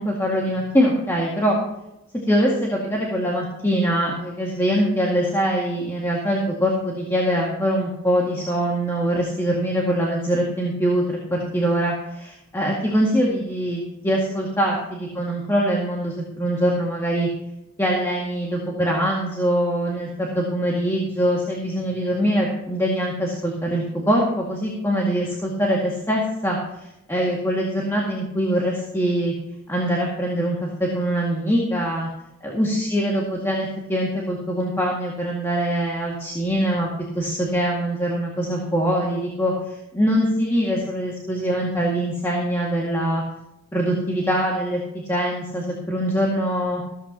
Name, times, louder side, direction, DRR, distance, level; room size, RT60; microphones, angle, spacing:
voice 1, 0.0-1.6 2.3-17.3 17.8-26.6 27.1-29.3 29.7-32.1 32.4-36.9 37.2-43.2 43.7-44.8 45.1-46.8, equal, 10° left, -3 dB, 2.0 m, -23 dB
15.0 x 13.5 x 2.9 m, 0.86 s
head